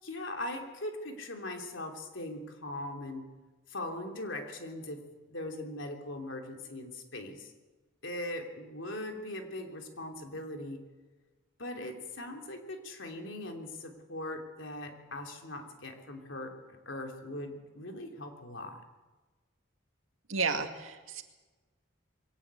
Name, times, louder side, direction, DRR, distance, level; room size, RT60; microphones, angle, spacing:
voice 1, 0.0-3.2 3.7-5.0 5.3-7.5 8.0-10.8 11.6-18.8, left 1 dB, 70° left, 3 dB, 3.2 m, -40 dB
voice 2, 20.3-21.2, right 4 dB, 85° right, 5 dB, 2.2 m, -32 dB
22.5 x 18.0 x 8.4 m, 1.3 s
head